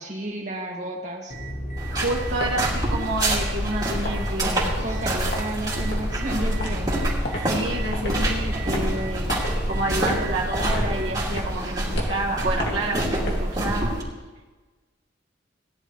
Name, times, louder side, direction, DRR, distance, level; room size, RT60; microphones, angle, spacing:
voice 1, 0.0-1.3 4.5-6.9, right 1 dB, 40° right, -1 dB, 2.2 m, -32 dB
sound 1, 1.3-11.3, equal, 40° left, 1.2 m, -32 dB
sound 2, 1.8-14.0, right 1 dB, 20° right, 2.7 m, -27 dB
voice 2, 1.9-4.7 7.3-9.4 9.7-13.9, right 2 dB, 75° right, -3 dB, 2.0 m, -29 dB
sound 3, 2.0-13.4, left 1 dB, 60° left, 2.3 m, -36 dB
18.0 x 11.0 x 3.3 m, 1.3 s
head